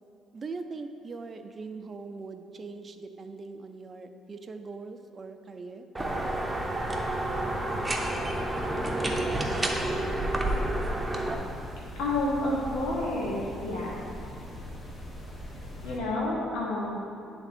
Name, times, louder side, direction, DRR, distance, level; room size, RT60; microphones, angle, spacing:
voice 1, 0.3-5.9, right 4 dB, 40° right, 7 dB, 0.4 m, -41 dB
sound 1, 5.9-11.3, right 1 dB, 15° right, 0.8 m, -29 dB
sound 2, 6.0-16.0, equal, 30° left, 1.2 m, -41 dB
voice 2, 12.0-14.0 15.8-17.0, left 2 dB, 80° left, -4 dB, 0.9 m, -29 dB
9.9 x 3.5 x 4.2 m, 2.6 s
cardioid pair, 80°, 0 cm